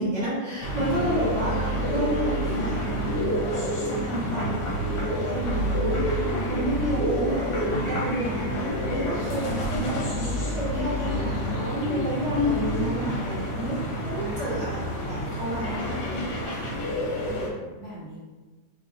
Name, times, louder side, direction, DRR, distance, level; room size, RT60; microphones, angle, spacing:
voice 1, 0.0-4.5 5.0-13.8 14.0-14.8 15.1-16.6, right 1 dB, 45° right, -9 dB, 1.3 m, -31 dB
sound 1, 0.6-17.5, equal, 65° left, 1.3 m, -28 dB
voice 2, 4.2-5.0 9.1-9.8 17.5-18.2, equal, 40° left, -11 dB, 1.0 m, -40 dB
3.1 x 2.5 x 3.8 m, 1.2 s
omnidirectional pair, 2.0 m